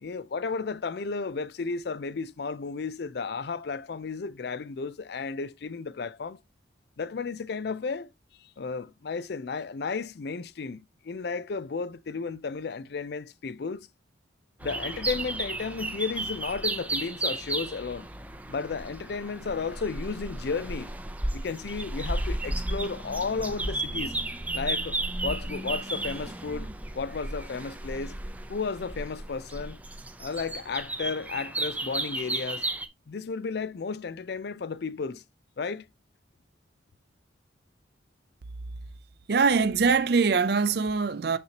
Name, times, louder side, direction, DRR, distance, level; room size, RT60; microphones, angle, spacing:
voice 1, 0.0-6.4 7.0-8.1 8.4-13.9 14.6-18.1 18.5-20.9 21.3-24.1 24.5-26.7 26.9-28.2 28.5-29.8 30.2-32.7 33.1-35.2 35.6-35.8, left 4 dB, 60° left, 0.4 m, -33 dB
sound 1, 14.6-32.9, right 2 dB, 10° right, 0.6 m, -33 dB
voice 2, 39.3-41.4, right 5 dB, 55° right, 0.5 m, -23 dB
6.7 x 6.5 x 2.8 m
head